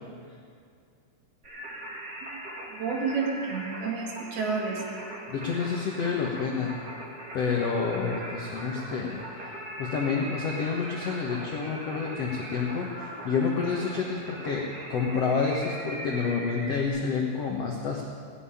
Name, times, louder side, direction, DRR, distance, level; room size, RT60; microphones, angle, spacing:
Singing, 1.4-16.9, right 1 dB, 35° right, 1.6 m, -40 dB
voice 1, 2.7-5.0, right 4 dB, 65° right, 0 dB, 3.8 m, -30 dB
voice 2, 5.3-6.8 7.3-9.5 9.8-14.6 14.9-18.0, left 5 dB, 85° left, 0 dB, 1.4 m, -29 dB
17.5 x 8.1 x 10.0 m, 2.2 s
omnidirectional pair, 5.0 m